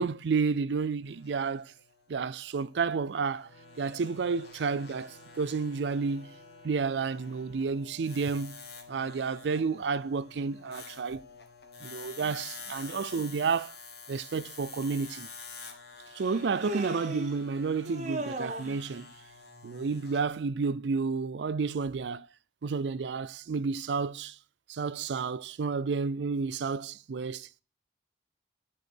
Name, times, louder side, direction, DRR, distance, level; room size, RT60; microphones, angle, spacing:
voice 1, 0.0-1.7 2.1-3.5 3.8-6.3 6.6-8.6 8.9-11.2 11.8-13.7 14.1-15.3 16.1-19.1 19.6-22.3 22.6-24.4 24.7-27.6, right 5 dB, 85° right, 0.4 m, -31 dB
sound 1, 1.0-20.3, left 5 dB, 65° left, 1.7 m, -49 dB
Wind instrument woodwind instrument, 3.4-8.0, right 2 dB, 35° left, 5.8 m, -57 dB
Human voice, 14.8-14.9 16.2-17.4 17.9-18.9, right 1 dB, 40° right, 1.0 m, -36 dB
12.0 x 4.8 x 4.4 m
head